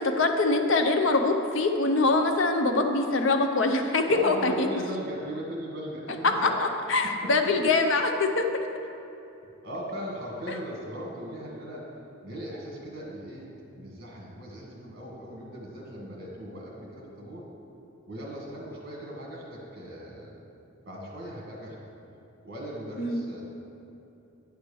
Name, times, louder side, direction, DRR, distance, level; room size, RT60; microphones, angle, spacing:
voice 1, 0.0-4.7 6.4-8.4 23.0-23.2, left 3 dB, 65° left, 5 dB, 0.7 m, -24 dB
voice 2, 4.1-6.6 7.2-7.3 9.6-11.9 12.2-13.5 13.8-17.5 18.1-20.4 20.9-21.8 22.4-23.4, equal, 45° right, -3 dB, 1.9 m, -38 dB
9.4 x 4.6 x 6.9 m, 2.8 s
head